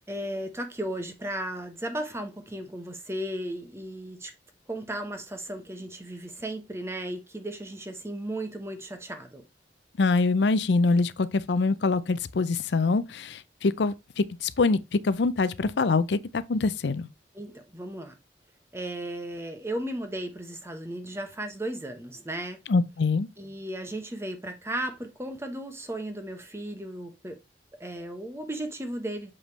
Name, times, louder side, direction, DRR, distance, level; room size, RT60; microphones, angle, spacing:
voice 1, 0.1-4.3 4.7-9.4 17.3-18.1 18.7-22.6 23.4-27.4 27.8-29.3, right 1 dB, 15° right, 1.0 m, -35 dB
voice 2, 10.0-17.1 22.7-23.3, left 3 dB, 80° left, 0.5 m, -24 dB
7.0 x 5.1 x 3.2 m
head